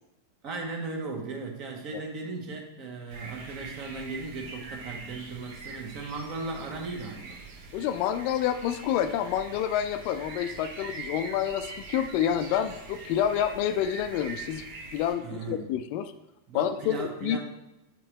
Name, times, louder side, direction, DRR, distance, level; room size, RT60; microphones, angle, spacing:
voice 1, 0.4-7.4 15.2-15.7 16.5-17.4, right 3 dB, 40° right, 2 dB, 1.2 m, -37 dB
sound 1, 3.1-15.1, right 4 dB, 55° right, 1.0 m, -43 dB
voice 2, 7.7-14.6 14.9-16.1 16.5-17.4, left 10 dB, 45° left, 11 dB, 0.3 m, -28 dB
7.2 x 4.5 x 3.0 m, 0.92 s
figure-of-eight pair, 90°, 0 cm